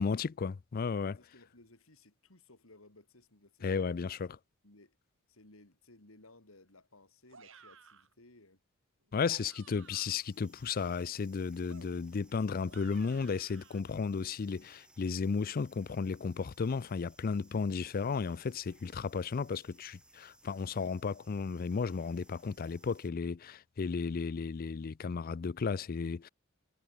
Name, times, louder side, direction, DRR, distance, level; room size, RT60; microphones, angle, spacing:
voice 1, 0.0-1.1 3.6-4.4 9.1-26.3, left 5 dB, 45° left, 0.4 m, -34 dB
voice 2, 1.0-3.8 4.6-5.0 5.3-8.6, left 2 dB, 80° left, 4.2 m, -59 dB
sound 1, 7.3-8.1 9.1-10.3 11.7-13.8, right 6 dB, 65° right, 6.1 m, -58 dB
sound 2, 9.7-23.1, right 1 dB, 5° right, 3.4 m, -64 dB
head